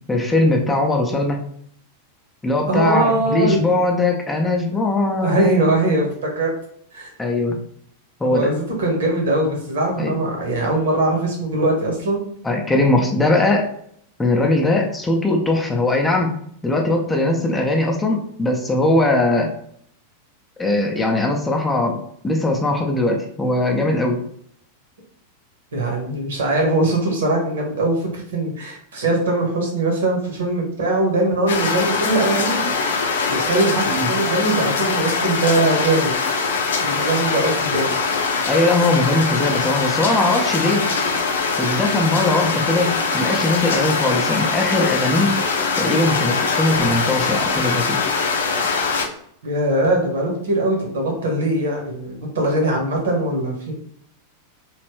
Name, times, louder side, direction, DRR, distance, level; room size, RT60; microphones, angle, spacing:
voice 1, 0.1-1.4 2.4-5.5 7.2-7.6 8.2-8.5 10.0-10.1 12.4-13.7 14.2-16.3 16.6-19.5 20.6-22.0 22.2-24.2 33.9-34.1 38.5-40.9 41.6-45.4 45.8-48.0, left 2 dB, 10° left, 1 dB, 0.6 m, -20 dB
voice 2, 2.7-3.6 5.1-6.5 6.9-7.1 8.3-12.2 25.7-32.6 33.3-36.1 36.8-37.9 49.4-53.7, right 2 dB, 60° right, 0 dB, 1.2 m, -21 dB
sound 1, 31.5-49.1, left 4 dB, 65° left, 0.5 m, -22 dB
3.2 x 2.9 x 3.1 m, 0.66 s
figure-of-eight pair, 90°, 0 cm